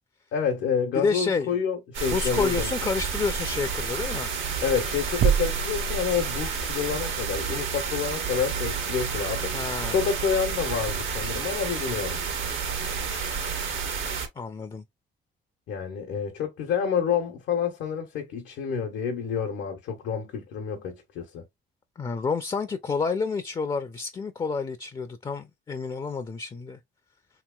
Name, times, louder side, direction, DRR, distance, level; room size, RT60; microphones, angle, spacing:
voice 1, 0.3-2.7 4.6-9.5 9.9-12.2 15.7-21.4, left 7 dB, 85° left, 0.8 m, -28 dB
voice 2, 1.0-1.5 2.0-4.3 9.5-10.0 14.4-14.8 22.0-26.8, left 4 dB, 25° left, 0.4 m, -29 dB
sound 1, 1.9-14.3, right 5 dB, 80° right, 1.1 m, -30 dB
sound 2, 5.2-6.8, right 8 dB, 55° right, 0.4 m, -26 dB
2.9 x 2.9 x 2.2 m
cardioid pair, 90°, 20 cm